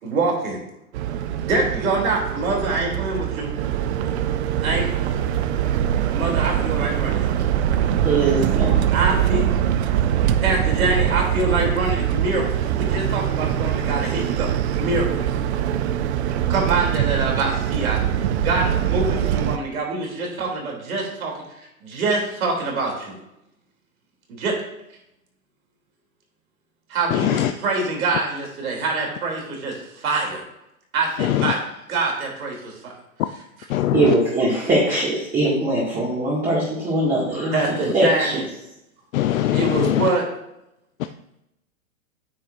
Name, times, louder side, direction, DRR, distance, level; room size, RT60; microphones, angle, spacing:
voice 1, 0.0-0.6 1.4-3.5 4.6-4.8 6.1-7.3 8.9-9.4 10.4-14.5 14.8-15.3 16.5-18.0 18.4-21.3 21.8-23.2 24.3-24.5 26.9-30.4 30.9-32.9 37.5-38.4 39.5-40.2, right 3 dB, 75° right, -1 dB, 3.0 m, -25 dB
sound 1, 0.9-19.6, right 10 dB, 50° right, 0.6 m, -23 dB
voice 2, 8.0-8.8 33.9-38.3, right 2 dB, 20° right, -7 dB, 2.0 m, -21 dB
voice 3, 27.1-27.5 31.2-31.5 33.7-34.1 39.1-40.1, left 12 dB, 70° left, 9 dB, 0.5 m, -21 dB
9.1 x 6.6 x 2.5 m, 0.84 s
hypercardioid pair, 125°, 42 cm